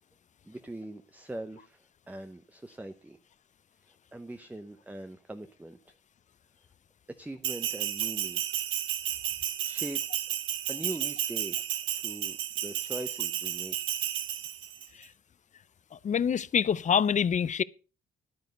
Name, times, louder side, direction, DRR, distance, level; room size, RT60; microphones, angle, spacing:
voice 1, 0.5-3.2 4.1-5.8 7.2-8.4 9.6-10.0 10.7-11.6 11.9-13.8, right 1 dB, 10° right, 0.7 m, -41 dB
Bell, 7.4-14.9, right 11 dB, 85° right, 1.2 m, -32 dB
voice 2, 15.9-17.6, left 7 dB, 40° left, 0.5 m, -26 dB
10.5 x 9.5 x 5.2 m
cardioid pair, 90°, 20 cm